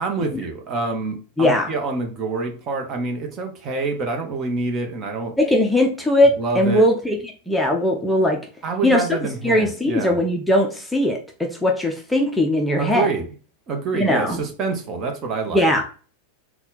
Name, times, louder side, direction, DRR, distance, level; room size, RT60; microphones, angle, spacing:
voice 1, 0.0-5.4 6.4-6.9 8.6-10.1 12.8-13.3 13.7-15.7, right 3 dB, 30° right, 4 dB, 0.9 m, -26 dB
voice 2, 1.4-1.7 5.4-7.2 7.5-8.4 8.8-9.2 9.4-13.1 13.9-14.4 15.5-15.9, left 1 dB, 5° left, 1 dB, 0.6 m, -19 dB
4.0 x 2.3 x 3.9 m, 0.38 s
figure-of-eight pair, 90°, 0 cm